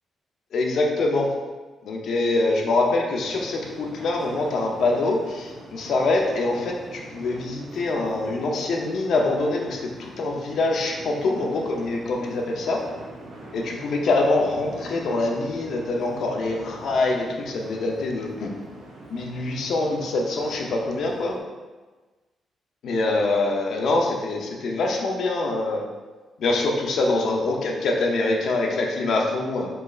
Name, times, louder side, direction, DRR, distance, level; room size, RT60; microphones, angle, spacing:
voice 1, 0.5-1.3 1.8-12.8 13.5-18.5 19.1-21.4 22.8-25.9 26.4-29.7, left 2 dB, 65° left, 1 dB, 0.6 m, -24 dB
sound 1, 3.2-21.4, right 1 dB, 70° right, 0.7 m, -43 dB
4.5 x 3.1 x 2.4 m, 1.3 s
cardioid pair, 135°, 0 cm